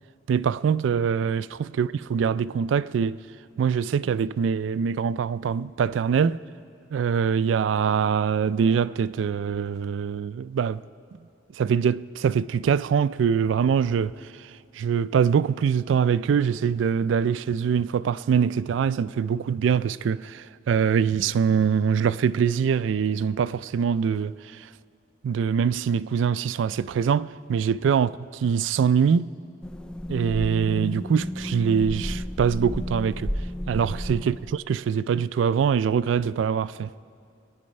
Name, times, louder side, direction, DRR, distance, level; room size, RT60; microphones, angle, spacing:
voice 1, 0.3-3.2 3.6-6.4 6.9-10.8 11.6-14.1 14.8-24.4 25.2-28.1 28.4-29.3 30.1-33.3 33.7-36.9, right 7 dB, 85° right, 0.3 m, -23 dB
sound 1, 29.6-34.6, equal, 5° left, 0.3 m, -32 dB
22.0 x 9.5 x 5.3 m
head